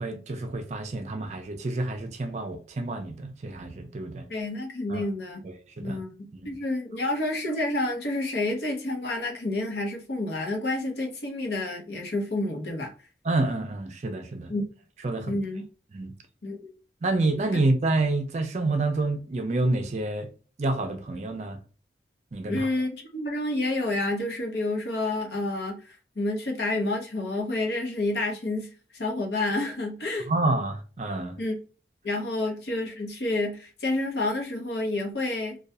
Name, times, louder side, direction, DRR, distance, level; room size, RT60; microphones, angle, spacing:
voice 1, 0.0-4.3 4.9-5.1 5.4-6.0 6.3-6.5 13.2-14.5 15.0-15.4 15.9-16.1 17.0-20.3 20.6-21.6 22.3-22.7 30.3-31.4, right 2 dB, 40° right, 0.4 m, -28 dB
voice 2, 4.3-5.4 5.8-12.9 14.5-14.6 15.3-15.6 16.4-16.7 22.5-30.3 31.4-31.6 32.0-35.6, left 2 dB, 70° left, 0.8 m, -29 dB
2.7 x 2.2 x 2.2 m
head